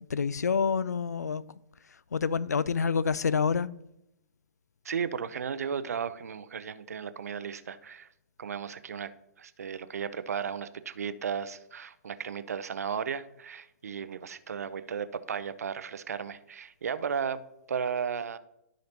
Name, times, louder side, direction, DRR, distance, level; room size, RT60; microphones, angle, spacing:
voice 1, 0.1-1.4 2.1-3.7, left 6 dB, 75° left, 0.4 m, -27 dB
voice 2, 4.8-8.1 8.4-9.1 9.4-17.4 17.7-18.4, right 7 dB, 65° right, 0.6 m, -35 dB
13.5 x 5.1 x 3.0 m
figure-of-eight pair, 120°, 9 cm